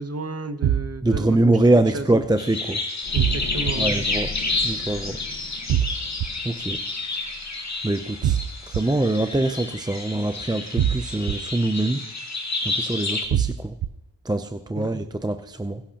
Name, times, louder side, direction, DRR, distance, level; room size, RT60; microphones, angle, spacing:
voice 1, 0.0-1.4 1.9-2.1 3.1-4.0 14.8-14.9, right 3 dB, 35° right, 10 dB, 0.9 m, -32 dB
sound 1, 0.6-1.2 3.2-3.7 5.7-6.3 8.2-8.8 10.8-11.3 13.3-13.9, right 10 dB, 70° right, 0.6 m, -22 dB
voice 2, 1.0-2.8 3.8-4.3 4.6-5.2 6.4-6.8 7.8-8.4 8.7-12.0 12.6-13.8 14.2-15.8, right 2 dB, 10° right, 8 dB, 0.5 m, -23 dB
sound 2, 2.4-13.3, left 2 dB, 40° left, 1.8 m, -30 dB
sound 3, 3.0-8.1 8.4-8.6, left 4 dB, 65° left, 1.6 m, -38 dB
21.0 x 11.5 x 2.9 m, 0.87 s
wide cardioid pair, 80°, 44 cm